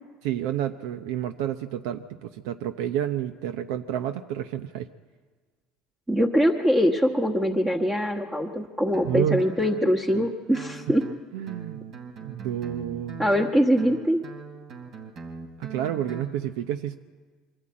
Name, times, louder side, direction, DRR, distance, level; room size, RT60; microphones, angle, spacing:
voice 1, 0.2-4.9 9.1-9.5 11.3-11.8 12.2-13.3 15.6-17.0, right 11 dB, 85° right, 9 dB, 0.7 m, -29 dB
voice 2, 6.1-11.0 13.2-14.2, equal, 15° right, 0 dB, 1.3 m, -23 dB
Guitar, 8.9-16.3, right 4 dB, 55° right, 2.9 m, -42 dB
24.0 x 12.5 x 8.7 m, 1.5 s
cardioid pair, 120°, 0 cm